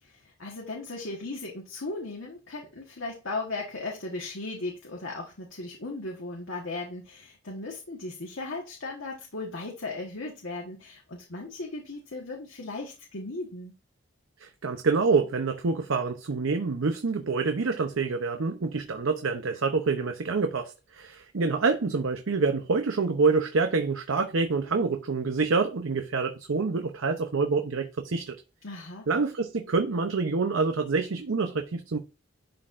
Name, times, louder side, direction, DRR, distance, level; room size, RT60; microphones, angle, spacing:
voice 1, 0.0-13.7 28.6-29.1, left 2 dB, 80° left, 1.4 m, -37 dB
voice 2, 14.4-28.3 29.1-32.0, right 4 dB, 85° right, 0.7 m, -27 dB
11.0 x 4.2 x 2.5 m
head